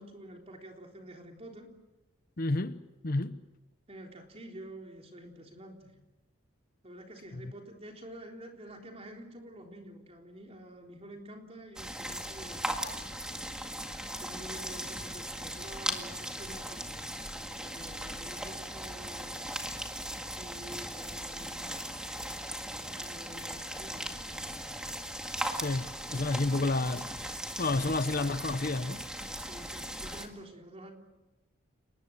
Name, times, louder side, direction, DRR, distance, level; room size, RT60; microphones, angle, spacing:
voice 1, 0.0-1.7 3.9-5.9 6.8-12.8 14.2-17.1 17.6-19.5 20.4-22.0 22.4-22.5 22.8-24.9 29.4-30.9, right 1 dB, 30° right, 3.7 m, -48 dB
voice 2, 2.4-2.8 3.0-3.4 7.3-7.5 25.5-27.3 27.6-29.0, left 2 dB, 45° left, 0.9 m, -30 dB
sound 1, 11.8-30.3, equal, 5° right, 2.0 m, -38 dB
30.0 x 20.0 x 7.5 m
head